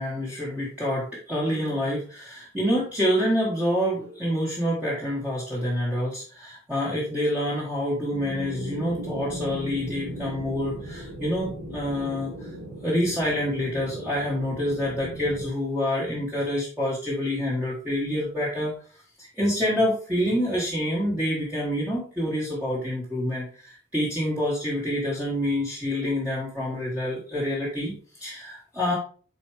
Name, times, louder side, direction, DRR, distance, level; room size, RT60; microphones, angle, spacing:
voice 1, 0.0-12.5 12.8-18.7 19.2-29.0, equal, 10° right, -7 dB, 1.5 m, -27 dB
sound 1, 8.1-15.5, right 1 dB, 85° right, 2.2 m, -37 dB
8.0 x 4.3 x 3.4 m, 0.42 s
head